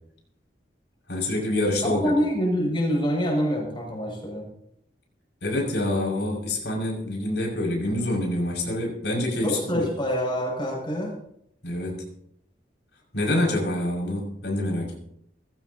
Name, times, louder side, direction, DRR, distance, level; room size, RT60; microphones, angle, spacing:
voice 1, 1.1-2.1 5.4-9.9 11.6-12.0 13.1-15.0, left 1 dB, 80° left, -2 dB, 6.0 m, -26 dB
voice 2, 1.8-4.5 9.4-11.2, equal, 30° left, -1 dB, 6.5 m, -26 dB
20.5 x 16.0 x 2.9 m, 0.73 s
head